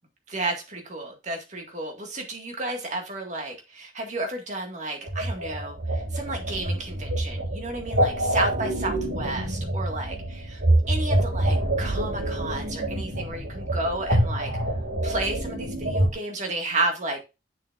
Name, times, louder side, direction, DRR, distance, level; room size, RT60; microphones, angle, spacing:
voice 1, 0.3-10.6 10.9-14.5 15.0-17.2, right 2 dB, 40° right, 2 dB, 2.0 m, -32 dB
sound 1, 5.1-16.1, right 1 dB, 80° right, 2.5 m, -26 dB
7.5 x 6.9 x 2.6 m, 0.27 s
head